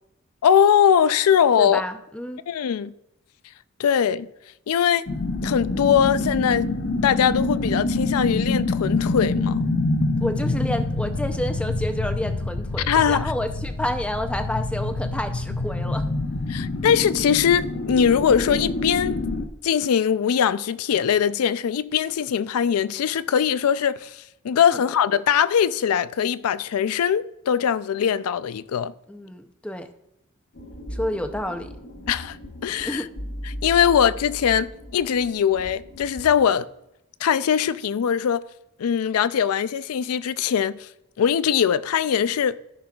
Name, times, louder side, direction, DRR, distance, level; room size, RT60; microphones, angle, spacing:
voice 1, 0.4-1.8 2.5-2.9 3.8-4.3 4.7-5.1 5.4-6.7 7.0-9.6 12.9-13.2 16.5-19.2 19.6-28.9 32.1-32.4 32.6-33.0 33.6-36.7 37.2-38.4 38.8-40.9 41.2-42.6, left 8 dB, 90° left, 0.4 m, -21 dB
voice 2, 1.6-2.4 10.2-16.1 24.7-24.8 29.1-29.9 30.9-31.7 32.8-33.1, left 1 dB, 5° left, 0.5 m, -29 dB
sound 1, 5.1-19.5, left 2 dB, 50° left, 0.7 m, -26 dB
sound 2, 30.5-36.5, equal, 65° left, 1.7 m, -38 dB
14.0 x 6.1 x 2.3 m
head